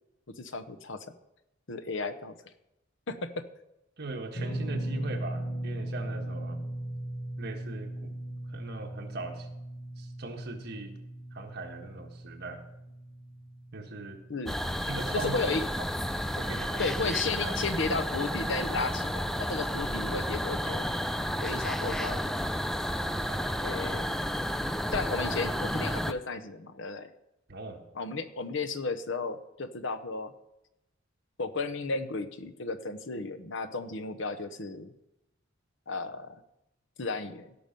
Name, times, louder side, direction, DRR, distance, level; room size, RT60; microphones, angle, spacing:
voice 1, 0.4-1.1 1.7-2.4 3.1-3.5 14.3-14.5 15.1-15.6 16.8-20.8 21.4-22.3 23.6-24.1 24.9-27.1 27.9-30.3 31.4-34.9 35.9-36.4 37.0-37.5, left 3 dB, 70° left, 11 dB, 0.9 m, -34 dB
voice 2, 4.0-6.6 7.4-8.2 8.5-9.5 10.0-10.9 11.3-12.6 13.7-14.2 14.9-15.3 16.4-16.8 17.4-17.6 23.3-23.6 27.5-27.8, right 2 dB, 55° right, 3 dB, 1.6 m, -40 dB
sound 1, 4.3-16.6 16.8-17.1 18.8-18.9, right 1 dB, 55° left, 2.3 m, -39 dB
sound 2, 14.5-26.1, equal, ahead, 0.4 m, -31 dB
16.5 x 6.0 x 5.3 m, 0.88 s
head